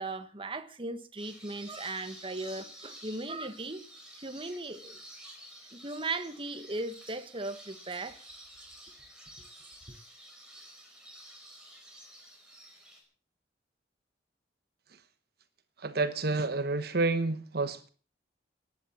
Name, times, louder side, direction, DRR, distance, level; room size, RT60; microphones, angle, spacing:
voice 1, 0.0-3.9 4.1-5.0 5.7-8.2 9.4-9.5, right 2 dB, 30° right, 1.4 m, -37 dB
sound 1, 1.2-13.0, right 1 dB, 5° right, 5.3 m, -51 dB
voice 2, 15.8-17.9, right 3 dB, 60° right, 1.1 m, -29 dB
16.0 x 10.5 x 7.1 m
head